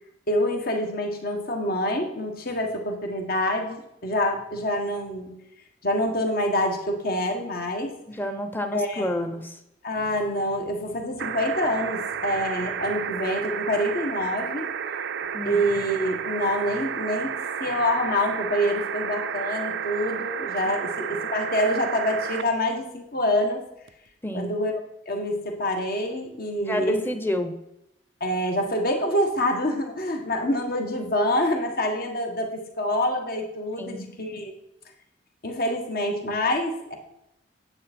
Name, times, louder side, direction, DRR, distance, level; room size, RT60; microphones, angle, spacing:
voice 1, 0.3-5.3 5.8-7.9 8.7-9.2 9.8-14.7 15.4-17.3 17.6-23.6 24.3-24.7 25.0-27.0 28.2-34.5 35.4-37.0, left 1 dB, 55° left, 3 dB, 1.6 m, -26 dB
voice 2, 8.1-9.6 15.3-15.6 24.2-24.6 26.7-27.6 33.8-34.1, left 1 dB, 10° left, 8 dB, 0.9 m, -29 dB
sound 1, 11.2-22.4 23.9-24.0, right 7 dB, 75° right, 0.5 m, -31 dB
9.6 x 8.2 x 4.4 m, 0.82 s
head